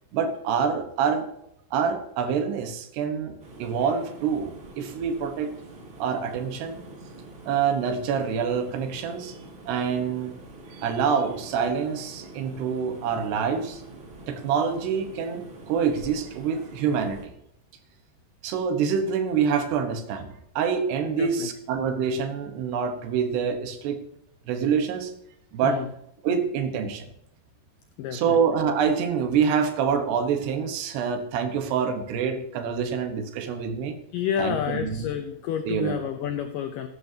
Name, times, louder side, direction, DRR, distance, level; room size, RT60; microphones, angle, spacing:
voice 1, 0.1-1.3 1.7-5.5 6.0-6.8 7.5-9.4 9.7-10.3 10.8-13.8 14.3-17.3 18.4-24.0 24.5-25.1 25.5-25.8 26.2-27.1 28.1-34.0 34.4-35.1 35.7-36.0, right 6 dB, 80° right, 7 dB, 3.3 m, -26 dB
sound 1, 3.4-17.3, right 2 dB, 40° right, 1.8 m, -45 dB
voice 2, 28.0-28.4 34.1-36.9, left 9 dB, 80° left, 7 dB, 1.9 m, -29 dB
15.5 x 12.0 x 2.8 m, 0.76 s
omnidirectional pair, 4.8 m